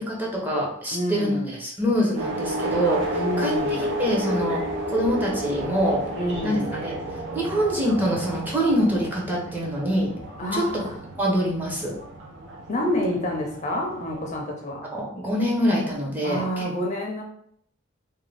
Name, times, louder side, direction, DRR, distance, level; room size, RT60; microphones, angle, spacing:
voice 1, 0.0-4.6 4.9-6.0 6.4-6.9 7.3-10.1 10.5-10.9 11.2-12.0 14.9-16.7, equal, 10° right, -3 dB, 0.6 m, -25 dB
voice 2, 0.9-1.5 3.1-3.8 6.2-6.7 10.4-10.9 12.7-14.8 16.2-17.2, equal, 35° left, 0 dB, 0.5 m, -28 dB
sound 1, 2.1-14.4, equal, 65° right, 0.6 m, -31 dB
2.5 x 2.1 x 3.1 m, 0.67 s
head